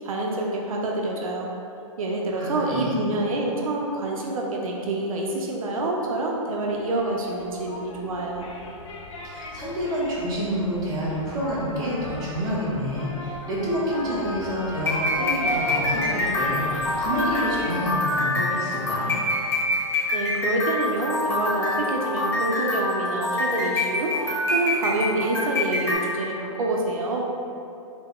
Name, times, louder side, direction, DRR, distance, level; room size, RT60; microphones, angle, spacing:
voice 1, 0.0-1.5 2.0-8.5 20.1-27.2, right 2 dB, 80° right, -1 dB, 0.4 m, -27 dB
voice 2, 2.3-3.0 9.2-19.1, equal, 25° right, -7 dB, 0.7 m, -28 dB
sound 1, 6.5-17.8, left 1 dB, 65° left, 0.4 m, -38 dB
Trumpet, 11.4-19.9, left 1 dB, 45° left, 0.9 m, -38 dB
sound 2, 13.9-25.9, left 2 dB, 15° left, 0.5 m, -26 dB
3.4 x 2.0 x 2.3 m, 2.7 s
hypercardioid pair, 125°, 17 cm